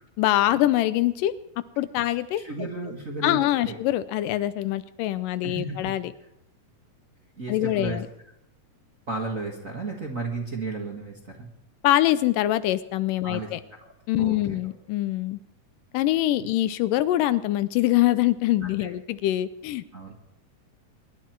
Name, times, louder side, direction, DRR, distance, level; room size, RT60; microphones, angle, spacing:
voice 1, 0.2-1.3 1.8-2.4 3.2-6.1 7.5-8.1 11.8-13.6 14.1-15.4 15.9-19.8, left 14 dB, 80° left, 14 dB, 2.3 m, -24 dB
voice 2, 2.0-3.4 3.6-3.8 5.4-5.9 7.3-8.0 9.1-11.5 13.2-13.5 13.8-13.9 14.2-14.7 16.4-16.5 18.8-18.9 19.9-20.1, right 3 dB, 35° right, -1 dB, 1.4 m, -34 dB
24.0 x 11.5 x 4.6 m, 0.80 s
omnidirectional pair, 3.9 m